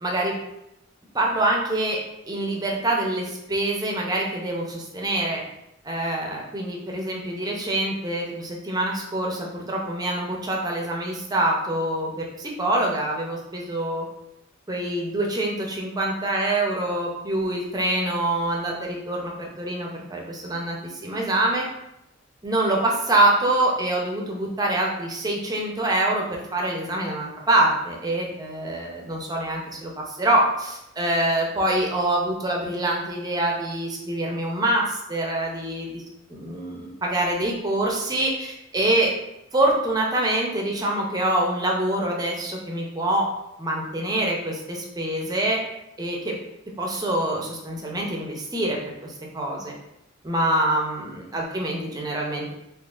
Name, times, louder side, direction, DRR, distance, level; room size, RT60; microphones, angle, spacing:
voice 1, 0.0-0.3 1.1-2.0 2.3-5.4 5.8-14.0 14.7-21.7 22.4-36.0 36.3-39.1 39.5-43.2 43.6-45.6 46.0-46.3 46.8-49.8 50.2-52.5, right 1 dB, 20° right, -1 dB, 0.6 m, -25 dB
4.0 x 2.8 x 2.4 m, 0.84 s
head